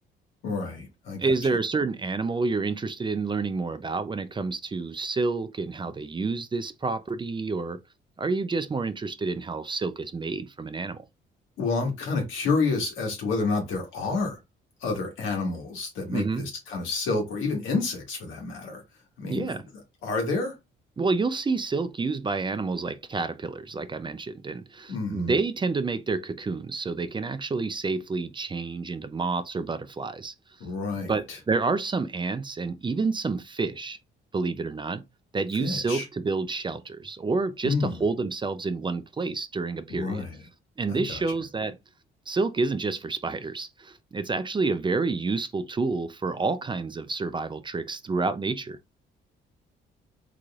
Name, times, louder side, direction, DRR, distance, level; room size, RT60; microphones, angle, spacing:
voice 1, 0.4-1.2 11.6-14.4 14.8-18.8 19.2-19.5 20.0-20.6 24.9-25.3 30.6-31.4 35.6-36.0 37.6-38.0 39.9-40.4 40.9-41.2, left 3 dB, 90° left, 1.7 m, -29 dB
voice 2, 1.2-7.8 8.2-11.1 16.1-16.5 19.2-19.6 21.0-30.3 31.1-34.0 34.3-35.0 35.3-40.3 40.8-41.8 42.3-48.8, right 3 dB, 25° right, 0.4 m, -29 dB
3.8 x 3.1 x 2.4 m
cardioid pair, 90°, 20 cm